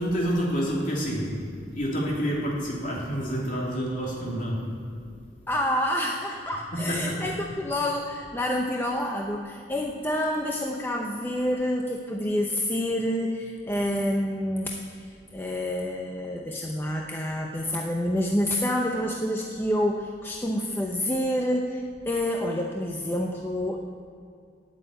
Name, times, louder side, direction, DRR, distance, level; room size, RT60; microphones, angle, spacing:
voice 1, 0.0-1.3 1.7-4.7 6.7-7.2, equal, 45° left, -4 dB, 2.9 m, -28 dB
voice 2, 5.5-14.7 15.0-15.1 15.3-23.8, left 1 dB, 10° left, 0 dB, 0.7 m, -28 dB
8.7 x 8.5 x 9.1 m, 2.3 s
head